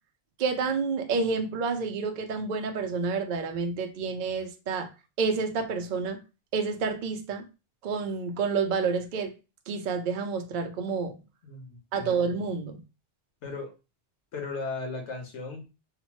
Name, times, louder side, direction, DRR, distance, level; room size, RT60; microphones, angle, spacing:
voice 1, 0.4-4.9 5.2-6.2 6.5-7.5 7.8-9.3 9.7-11.2 11.9-12.8, right 5 dB, 60° right, 0.5 m, -29 dB
voice 2, 11.4-12.1 13.4-13.7 14.3-15.7, left 3 dB, 85° left, 1.1 m, -36 dB
2.8 x 2.1 x 2.9 m
omnidirectional pair, 1.2 m